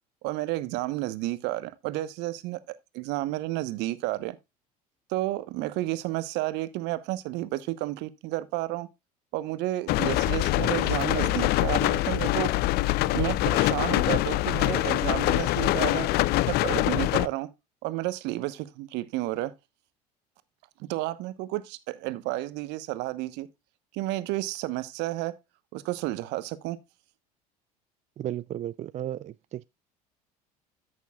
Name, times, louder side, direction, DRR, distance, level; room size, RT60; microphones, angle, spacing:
voice 1, 0.2-2.6 2.9-4.4 5.1-8.9 9.3-12.5 13.1-16.1 16.5-17.5 17.8-19.5 20.9-23.5 23.9-25.3 25.7-26.8, right 17 dB, 60° right, 1.0 m, -31 dB
sound 1, 9.9-17.3, left 17 dB, 55° left, 0.5 m, -24 dB
voice 2, 28.2-29.6, right 12 dB, 35° right, 0.4 m, -34 dB
14.0 x 6.4 x 2.3 m
hypercardioid pair, 70°, 20 cm